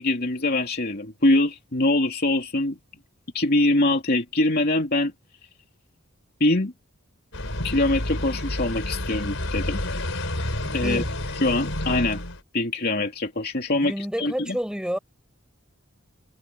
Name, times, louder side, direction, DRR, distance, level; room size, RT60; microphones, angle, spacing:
voice 1, 0.0-2.8 3.3-5.1 6.4-6.7 7.6-9.8 10.7-11.0 11.4-12.2 12.5-14.6, left 2 dB, 50° left, 2.9 m, -23 dB
sound 1, 7.3-12.4, left 1 dB, 70° left, 5.9 m, -29 dB
voice 2, 10.6-11.1 13.8-15.0, equal, 5° right, 7.8 m, -29 dB
head